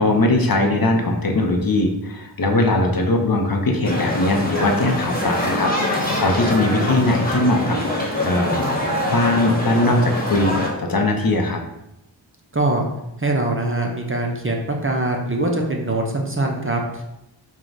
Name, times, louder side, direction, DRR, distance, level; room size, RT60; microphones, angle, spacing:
voice 1, 0.0-8.6 9.1-10.5 10.8-11.6, left 2 dB, 50° left, 2 dB, 0.7 m, -20 dB
sound 1, 3.8-10.7, left 1 dB, 20° left, 1.2 m, -24 dB
voice 2, 12.5-12.9 13.2-17.0, right 2 dB, 30° right, 0 dB, 0.6 m, -23 dB
4.5 x 2.2 x 3.9 m, 0.86 s
wide cardioid pair, 50°, 46 cm